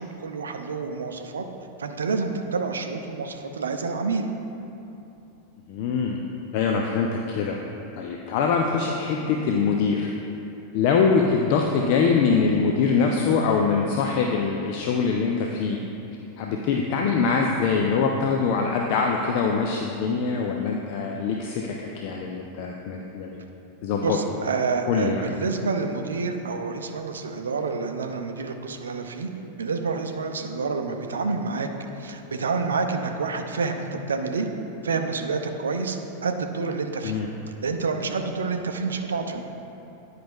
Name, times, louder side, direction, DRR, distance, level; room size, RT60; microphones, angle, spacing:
voice 1, 0.0-1.5 1.8-4.3 24.0-29.3 29.6-31.7 32.0-34.5 34.8-37.2 37.6-39.4, right 4 dB, 70° right, 6 dB, 0.6 m, -28 dB
voice 2, 5.7-6.2 6.5-7.6 7.9-10.1 10.7-15.8 16.4-21.8 22.0-23.4 23.8-24.2 24.9-25.2 37.0-37.3, left 5 dB, 45° left, 1 dB, 0.5 m, -23 dB
10.0 x 5.7 x 3.6 m, 2.8 s
figure-of-eight pair, 90°, 0 cm